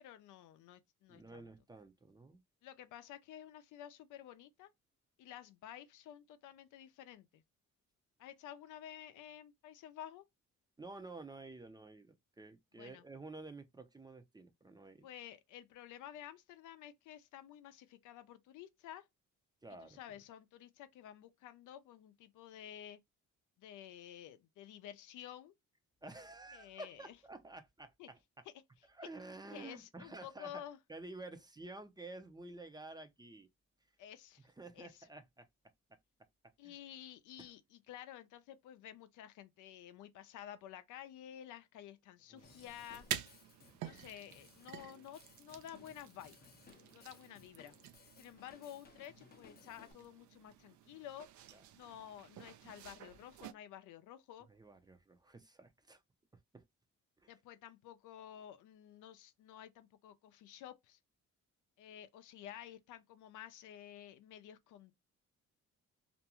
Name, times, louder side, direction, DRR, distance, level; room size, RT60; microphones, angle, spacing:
voice 1, 0.0-1.5 2.6-4.7 5.2-7.4 8.2-10.2 12.7-13.0 15.0-19.1 19.8-23.0 23.6-25.5 26.5-27.1 28.0-28.1 29.5-30.8 34.0-34.5 34.8-34.9 36.6-43.1 43.8-46.4 46.9-47.7 48.2-51.3 51.7-54.5 57.3-61.0 61.8-64.9, left 11 dB, 85° left, 0.5 m, -52 dB
voice 2, 1.1-2.4 10.8-15.1 19.6-20.2 26.0-28.2 28.9-30.6 30.9-33.5 34.6-35.5 35.9-36.0 36.6-36.8 37.4-37.5 42.3-42.5 51.5-51.7 54.5-56.0 56.5-56.6 57.2-57.3, right 2 dB, 15° right, 0.5 m, -51 dB
Drum kit / Drum, 42.4-49.9, left 6 dB, 30° left, 0.6 m, -62 dB
sound 1, 42.4-53.5, right 11 dB, 70° right, 0.5 m, -49 dB
2.5 x 2.2 x 2.8 m
cardioid pair, 90°, 30 cm